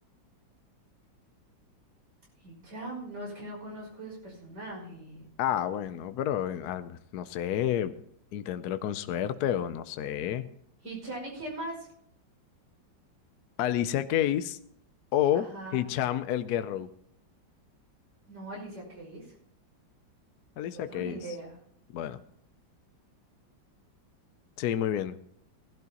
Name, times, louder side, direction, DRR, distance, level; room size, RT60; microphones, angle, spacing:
voice 1, 2.4-5.3 10.8-11.9 15.3-15.9 18.3-19.3 20.6-21.6, right 1 dB, 65° right, -2 dB, 6.5 m, -40 dB
voice 2, 5.4-7.9 8.3-10.5 13.6-14.6 15.1-15.5 15.7-16.9 20.6-21.2 21.9-22.2 24.6-25.2, left 11 dB, 70° left, 12 dB, 1.0 m, -29 dB
18.5 x 12.0 x 2.9 m, 0.68 s
omnidirectional pair, 2.1 m